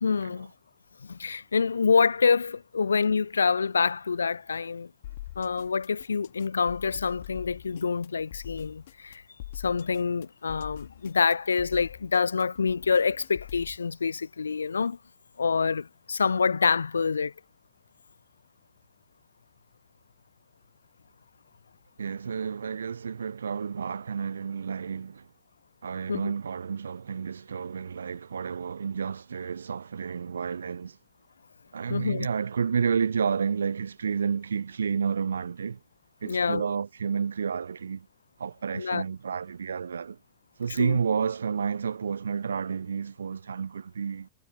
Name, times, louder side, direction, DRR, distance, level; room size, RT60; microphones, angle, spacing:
voice 1, 0.0-0.5 1.0-4.9 5.4-9.2 9.6-15.0 15.4-17.3 26.1-26.3 31.9-32.3 36.2-36.6 38.7-39.0 40.8-41.0, left 5 dB, 75° left, 0.5 m, -26 dB
sound 1, 5.0-13.8, left 14 dB, 55° left, 3.0 m, -44 dB
voice 2, 22.0-25.3 25.8-31.0 31.7-35.8 36.2-38.1 38.4-40.2 40.6-44.3, right 6 dB, 70° right, 0.4 m, -30 dB
figure-of-eight pair, 90°, 0 cm